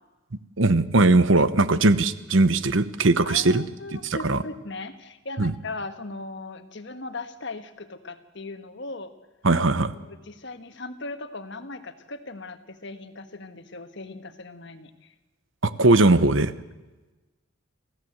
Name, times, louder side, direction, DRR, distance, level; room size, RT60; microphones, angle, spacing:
voice 1, 0.6-3.6 3.9-4.4 5.4-5.5 9.4-9.9 15.6-16.5, right 2 dB, 65° right, 14 dB, 1.0 m, -19 dB
voice 2, 3.2-9.1 9.9-15.1, left 3 dB, 60° left, 9 dB, 1.5 m, -38 dB
26.5 x 16.0 x 8.0 m, 1.2 s
head